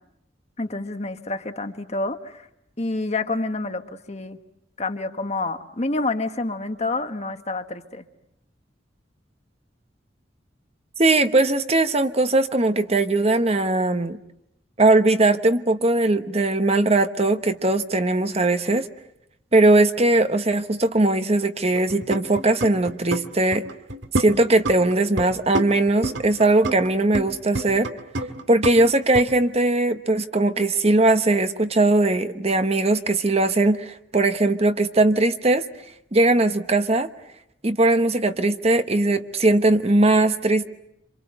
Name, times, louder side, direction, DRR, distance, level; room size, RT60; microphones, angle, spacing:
voice 1, 0.6-2.5 2.8-4.4 4.8-8.0, left 2 dB, 35° left, 7 dB, 1.4 m, -28 dB
voice 2, 11.0-14.2 14.8-18.9 19.5-23.6 24.1-27.9 28.5-35.6 36.1-37.1 37.6-40.7, right 2 dB, 35° right, 9 dB, 1.1 m, -20 dB
sound 1, 21.6-23.3 23.5-25.3 25.5-27.3 27.5-29.2, right 2 dB, 80° right, 2.0 m, -28 dB
27.5 x 26.5 x 7.9 m, 0.80 s
head